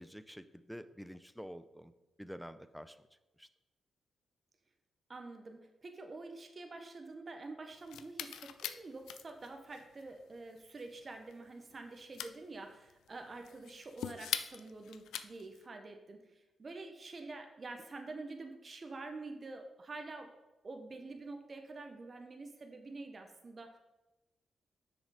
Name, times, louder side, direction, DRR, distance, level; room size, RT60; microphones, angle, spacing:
voice 1, 0.0-1.9 2.2-3.0 3.4-3.5, equal, ahead, 12 dB, 0.6 m, -48 dB
voice 2, 5.1-20.3 20.6-23.8, right 3 dB, 45° right, 5 dB, 1.1 m, -47 dB
sound 1, 7.7-15.7, left 9 dB, 80° left, 0.4 m, -44 dB
6.4 x 6.4 x 4.9 m, 1.0 s
hypercardioid pair, 40°, 0 cm